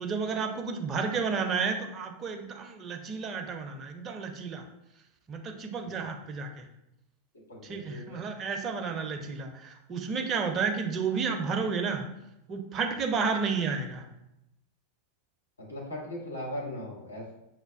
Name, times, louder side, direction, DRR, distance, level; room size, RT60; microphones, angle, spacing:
voice 1, 0.0-4.6 5.3-6.6 7.6-12.0 12.5-14.0, right 5 dB, 30° right, 4 dB, 0.5 m, -31 dB
voice 2, 7.5-8.2 15.6-17.3, left 1 dB, 75° left, -3 dB, 0.9 m, -39 dB
5.6 x 2.2 x 2.3 m, 0.88 s
figure-of-eight pair, 90°, 0 cm